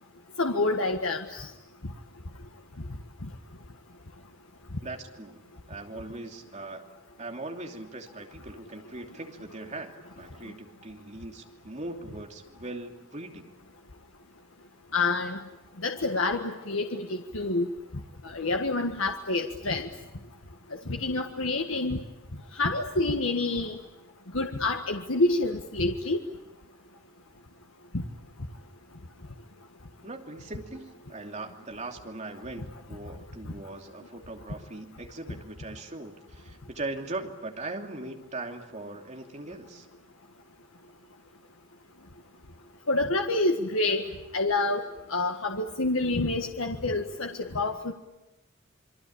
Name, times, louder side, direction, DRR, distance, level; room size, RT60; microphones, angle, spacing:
voice 1, 0.4-1.5 14.9-15.4 15.8-17.7 18.2-19.9 20.9-22.0 22.6-23.8 24.3-26.2 42.9-44.1 44.3-47.9, left 2 dB, 80° left, 4 dB, 1.6 m, -27 dB
voice 2, 4.8-5.4 5.7-6.8 7.2-13.5 30.0-39.9, right 2 dB, 35° right, 3 dB, 2.9 m, -40 dB
27.5 x 23.5 x 8.7 m, 0.98 s
head